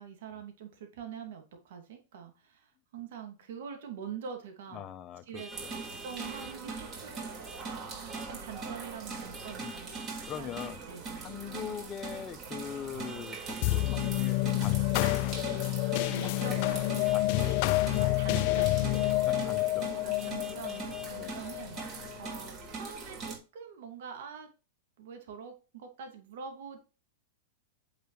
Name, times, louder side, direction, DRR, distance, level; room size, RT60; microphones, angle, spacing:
voice 1, 0.0-4.8 5.3-9.9 10.4-10.5 10.9-11.3 16.0-16.9 17.3-17.6 18.0-18.9 20.0-21.8 22.2-24.5 25.0-26.8, right 7 dB, 65° right, 2.3 m, -45 dB
voice 2, 4.7-5.7 9.5-9.7 10.0-10.8 11.1-15.8 17.1-17.6 19.2-19.9 21.2-21.4, left 9 dB, 30° left, 0.8 m, -42 dB
Vehicle horn car horn honking, 5.3-6.6 7.4-7.7 8.1-8.3 9.3-10.7 13.0-14.3 16.0-16.2 17.0-17.2 17.9-18.1 18.9-19.2 20.2-21.1, right 2 dB, 10° right, 0.7 m, -48 dB
sound 1, 5.5-23.4, right 4 dB, 35° right, 3.9 m, -41 dB
sound 2, 13.6-22.3, left 18 dB, 55° left, 0.4 m, -29 dB
8.0 x 6.5 x 3.2 m
hypercardioid pair, 105°, 0 cm